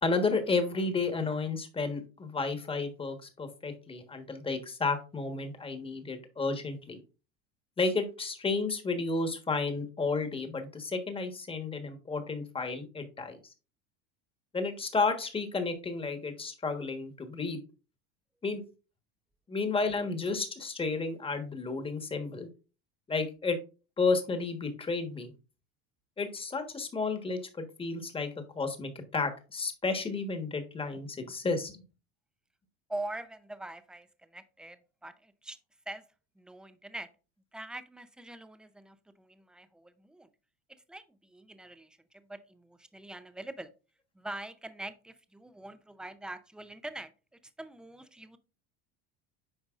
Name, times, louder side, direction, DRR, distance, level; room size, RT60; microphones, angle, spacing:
voice 1, 0.0-7.0 7.8-13.4 14.5-17.6 18.4-18.6 19.5-22.5 23.1-23.6 24.0-25.3 26.2-31.8, left 4 dB, 15° left, 1.3 m, -32 dB
voice 2, 32.9-35.6 35.9-36.0 36.4-37.1 37.5-40.3 40.7-43.7 44.1-47.1 47.6-48.4, right 2 dB, 5° right, 0.5 m, -43 dB
9.0 x 5.2 x 2.4 m
supercardioid pair, 120°, 32 cm